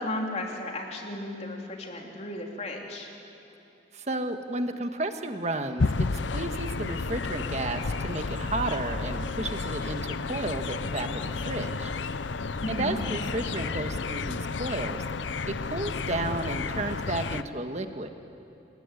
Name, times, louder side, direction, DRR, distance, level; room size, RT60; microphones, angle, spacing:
voice 1, 0.0-3.1 12.6-13.0, left 1 dB, 35° left, 0 dB, 3.3 m, -34 dB
voice 2, 3.9-11.1 11.4-11.9 12.7-15.0 15.5-18.1, right 2 dB, 35° right, 6 dB, 1.6 m, -32 dB
sound 1, 5.8-17.4, left 4 dB, 80° left, 0.7 m, -31 dB
28.5 x 20.0 x 9.9 m, 2.7 s
head